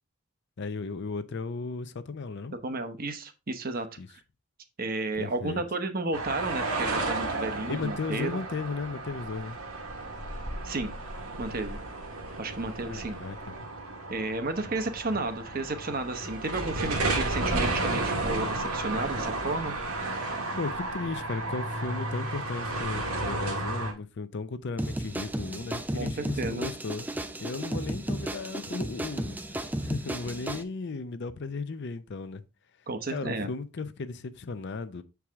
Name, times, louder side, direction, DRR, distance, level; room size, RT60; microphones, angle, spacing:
voice 1, 0.6-2.5 4.0-4.1 5.2-5.6 7.7-9.6 12.9-13.7 20.6-27.1 27.4-32.4 33.1-35.0, left 4 dB, 50° left, 0.5 m, -35 dB
voice 2, 2.6-3.9 4.8-8.4 10.6-10.9 11.4-11.8 12.4-13.2 14.1-19.8 26.0-26.7 32.9-33.5, right 2 dB, 40° right, 0.8 m, -32 dB
sound 1, 6.1-23.9, right 2 dB, 80° right, 1.6 m, -33 dB
sound 2, 24.8-30.6, right 1 dB, 10° right, 0.4 m, -34 dB
7.2 x 4.7 x 3.5 m
head